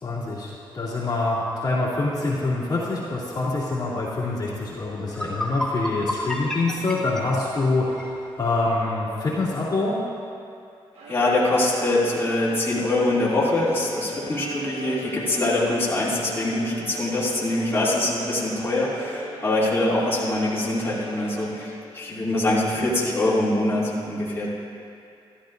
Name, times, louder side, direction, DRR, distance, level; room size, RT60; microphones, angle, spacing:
voice 1, 0.0-10.0, left 2 dB, 45° left, -8 dB, 2.6 m, -25 dB
sound 1, 5.0-8.1, left 1 dB, 5° left, 1.3 m, -31 dB
Bowed string instrument, 10.9-22.0, right 2 dB, 80° right, 1.4 m, -39 dB
voice 2, 11.1-24.5, left 2 dB, 20° left, -9 dB, 2.6 m, -23 dB
13.5 x 13.5 x 2.6 m, 2.5 s
cardioid pair, 95°, 10 cm